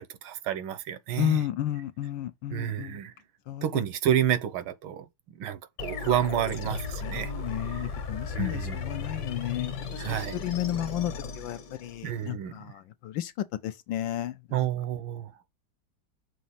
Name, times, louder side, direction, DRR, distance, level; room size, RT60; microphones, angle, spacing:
voice 1, 0.0-1.4 2.5-3.1 3.6-5.1 5.3-7.3 7.6-7.8 8.3-8.8 10.0-10.4 12.0-12.7 14.5-15.3, right 11 dB, 75° right, 1.5 m, -30 dB
voice 2, 1.2-3.0 3.5-3.8 7.0-13.3 13.6-14.4, left 12 dB, 75° left, 1.2 m, -32 dB
sound 1, 5.8-12.2, left 4 dB, 55° left, 1.7 m, -36 dB
6.3 x 3.0 x 5.6 m
omnidirectional pair, 2.4 m